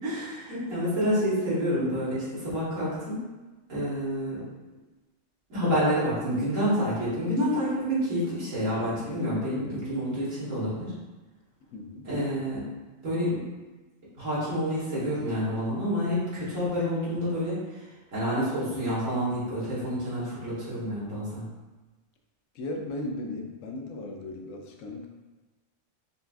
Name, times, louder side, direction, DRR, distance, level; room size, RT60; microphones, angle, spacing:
voice 1, 0.0-3.2 3.7-4.4 5.5-10.9 12.1-12.6 13.0-13.4 14.2-17.6 18.1-21.5, equal, 90° right, -9 dB, 1.9 m, -28 dB
voice 2, 11.7-12.1 22.5-25.1, left 2 dB, 90° left, 3 dB, 1.0 m, -36 dB
5.4 x 2.3 x 2.5 m, 1.2 s
omnidirectional pair, 1.3 m